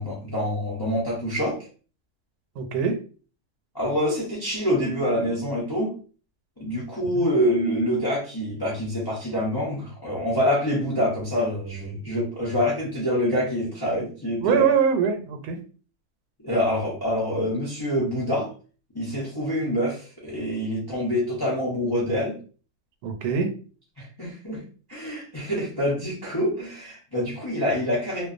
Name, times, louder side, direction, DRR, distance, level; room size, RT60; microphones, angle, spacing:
voice 1, 0.0-1.6 3.7-5.9 6.6-14.7 16.4-18.5 18.9-22.4 24.0-24.6 24.9-28.3, equal, 35° left, -5 dB, 0.4 m, -26 dB
voice 2, 2.6-3.0 7.1-7.3 14.4-15.6 23.0-23.5, right 6 dB, 85° right, 5 dB, 1.1 m, -23 dB
2.5 x 2.2 x 2.4 m, 0.39 s
omnidirectional pair, 1.6 m